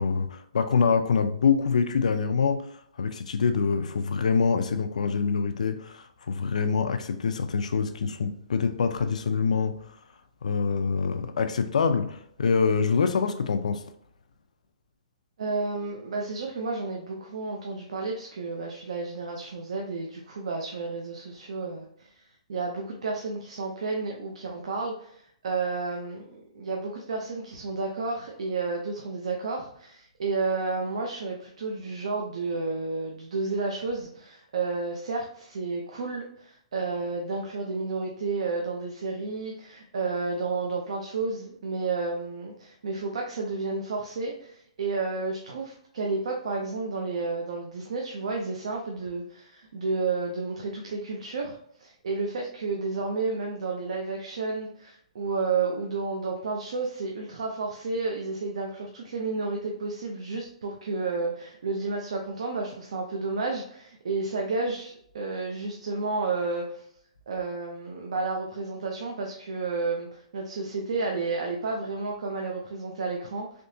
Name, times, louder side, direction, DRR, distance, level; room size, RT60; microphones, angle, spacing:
voice 1, 0.0-10.0 10.4-13.9, left 5 dB, 80° left, 0.4 m, -25 dB
voice 2, 15.4-22.1 22.5-66.8 67.3-73.6, right 3 dB, 60° right, 0.5 m, -31 dB
3.5 x 2.8 x 2.6 m
hypercardioid pair, 180°, 4 cm